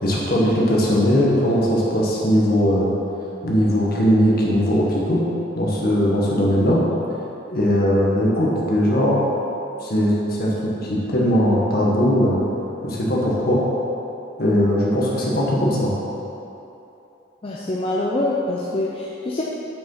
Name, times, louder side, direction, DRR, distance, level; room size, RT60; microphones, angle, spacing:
voice 1, 0.0-2.9 3.4-5.2 5.5-6.8 7.5-9.2 9.8-12.4 12.8-13.6 14.4-15.9, equal, 50° left, -4 dB, 1.6 m, -19 dB
voice 2, 17.4-19.4, left 2 dB, 30° left, -5 dB, 0.6 m, -25 dB
7.2 x 6.1 x 5.6 m, 2.9 s
head